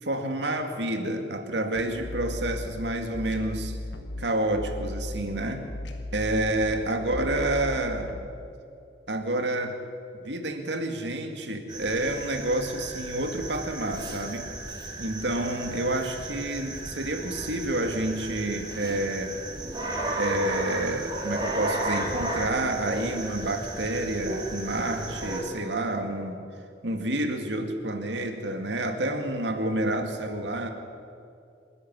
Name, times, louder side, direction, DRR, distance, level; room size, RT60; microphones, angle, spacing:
voice 1, 0.0-3.8 4.2-5.7 6.1-8.1 9.1-9.8 10.2-14.5 15.0-19.3 20.2-26.4 26.8-30.7, right 1 dB, 70° right, 5 dB, 2.2 m, -29 dB
sound 1, 1.7-8.3, left 1 dB, 70° left, 1.5 m, -36 dB
sound 2, 11.7-25.4, right 2 dB, 25° right, 3.1 m, -34 dB
27.0 x 10.0 x 9.5 m, 2.5 s
head